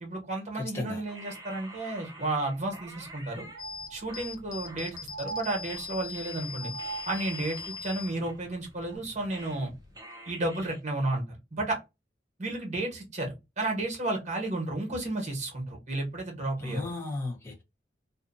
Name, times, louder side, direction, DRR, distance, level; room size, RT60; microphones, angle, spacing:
voice 1, 0.0-3.5 3.9-6.7 7.0-9.7 10.2-11.2 11.5-11.8 12.4-16.9, right 2 dB, 40° right, 1.2 m, -32 dB
sound 1, 1.1-3.6 4.1-5.4 5.7-9.7 9.9-10.8, right 1 dB, 20° right, 0.8 m, -48 dB
sound 2, 2.5-2.6 2.9-3.0 3.5-4.4 5.1-6.1 6.6-7.6 8.8-9.0, right 5 dB, 70° right, 0.4 m, -42 dB
sound 3, 3.6-10.0, left 5 dB, 45° left, 0.4 m, -42 dB
voice 2, 16.6-17.6, left 2 dB, 15° left, 0.9 m, -34 dB
2.6 x 2.5 x 2.5 m
head